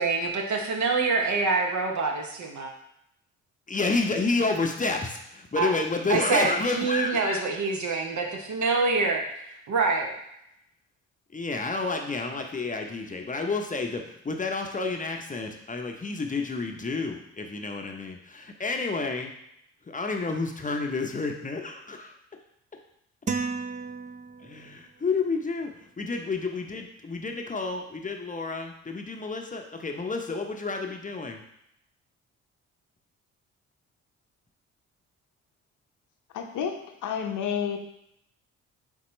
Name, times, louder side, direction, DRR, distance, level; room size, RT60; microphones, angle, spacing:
voice 1, 0.0-2.7 5.6-5.7 6.1-10.1, right 4 dB, 50° right, 2 dB, 0.9 m, -26 dB
voice 2, 3.7-7.4 11.3-19.3 19.8-22.2 24.4-25.7 26.0-31.4, left 3 dB, 20° left, 3 dB, 0.7 m, -30 dB
sound 1, 23.3-24.8, right 4 dB, 20° right, 0.4 m, -33 dB
voice 3, 36.3-37.8, left 7 dB, 55° left, 3 dB, 0.8 m, -30 dB
4.2 x 3.7 x 3.1 m, 0.78 s
hypercardioid pair, 45°, 36 cm